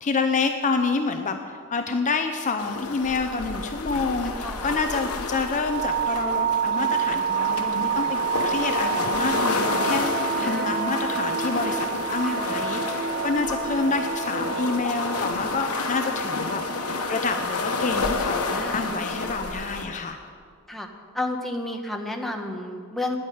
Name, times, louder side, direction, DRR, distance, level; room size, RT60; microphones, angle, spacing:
voice 1, 0.0-20.2, left 4 dB, 35° left, 6 dB, 0.6 m, -28 dB
sound 1, 2.6-19.9, left 4 dB, 75° left, 1.1 m, -30 dB
voice 2, 4.3-4.7 10.4-10.8 12.2-12.6 18.5-18.9 20.7-20.9 21.1-23.2, left 1 dB, ahead, 2 dB, 1.0 m, -32 dB
sound 2, 5.6-19.7, right 10 dB, 80° right, 3.4 m, -30 dB
sound 3, 9.3-14.7, right 1 dB, 60° right, 2.1 m, -33 dB
9.4 x 8.8 x 9.8 m, 2.1 s
head